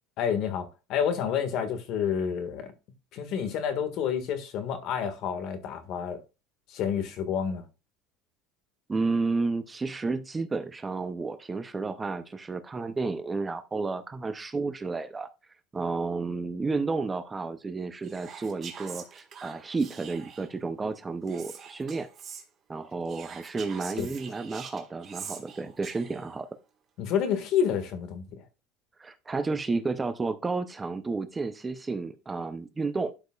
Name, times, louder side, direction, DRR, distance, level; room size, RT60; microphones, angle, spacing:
voice 1, 0.2-2.7 3.1-6.2 6.7-7.6 24.0-24.1 27.0-28.2, left 8 dB, 55° left, 1.7 m, -29 dB
voice 2, 8.9-15.3 15.7-22.1 22.7-26.5 29.0-33.1, right 3 dB, 15° right, 0.5 m, -31 dB
Whispering, 18.0-20.6 21.3-22.4 23.1-26.3, right 7 dB, 30° right, 1.6 m, -44 dB
12.0 x 5.2 x 2.3 m
cardioid pair, 145°, 0 cm